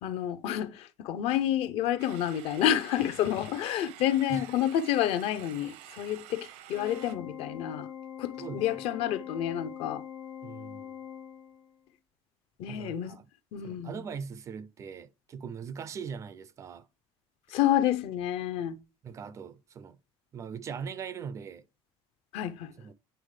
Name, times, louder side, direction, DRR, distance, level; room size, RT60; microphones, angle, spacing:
voice 1, 0.0-7.9 8.2-10.0 12.6-13.2 13.5-14.0 17.5-18.8 22.3-22.7, left 11 dB, 55° left, 0.6 m, -29 dB
sound 1, 2.0-7.1, right 12 dB, 70° right, 0.6 m, -49 dB
Organ, 6.7-11.8, left 9 dB, 85° left, 1.2 m, -43 dB
voice 2, 8.4-8.8 10.4-11.0 12.7-13.3 13.6-16.9 19.0-20.0 20.3-21.6 22.8-22.9, right 6 dB, 25° right, 0.3 m, -40 dB
9.0 x 3.9 x 3.2 m
cardioid pair, 165°, 12 cm